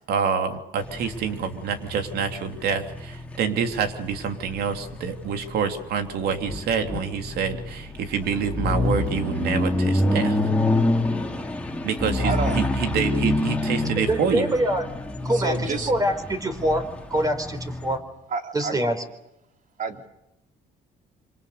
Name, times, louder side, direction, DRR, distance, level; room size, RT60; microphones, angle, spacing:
voice 1, 0.1-10.4 11.8-14.5, right 6 dB, 70° right, 6 dB, 3.2 m, -27 dB
sound 1, 0.8-18.0, left 1 dB, 5° left, 3.1 m, -27 dB
voice 2, 12.2-12.6 15.3-15.9 18.3-18.8 19.8-20.1, right 4 dB, 50° right, 6 dB, 3.2 m, -29 dB
voice 3, 14.0-14.8 15.2-16.8 17.1-18.0 18.5-19.0, right 1 dB, 20° right, 8 dB, 4.5 m, -24 dB
26.5 x 26.0 x 6.8 m, 0.87 s
cardioid pair, 110°, 17 cm